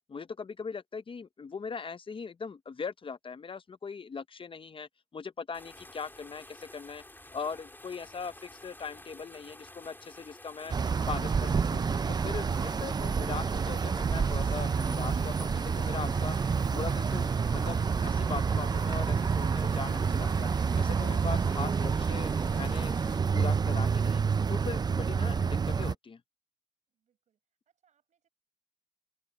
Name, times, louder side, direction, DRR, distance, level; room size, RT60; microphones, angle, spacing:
voice 1, 0.1-7.0 7.3-10.7 11.1-16.4 16.7-22.3 22.6-24.2 24.5-26.2, left 5 dB, 45° left, 0.7 m, -40 dB
sound 1, 5.5-23.2, left 1 dB, 15° left, 3.8 m, -51 dB
sound 2, 10.7-25.9, right 5 dB, 35° right, 0.4 m, -28 dB
voice 2, 26.9-27.4 27.7-28.3, right 8 dB, 85° right, 7.3 m, -75 dB
cardioid pair, 65°, 12 cm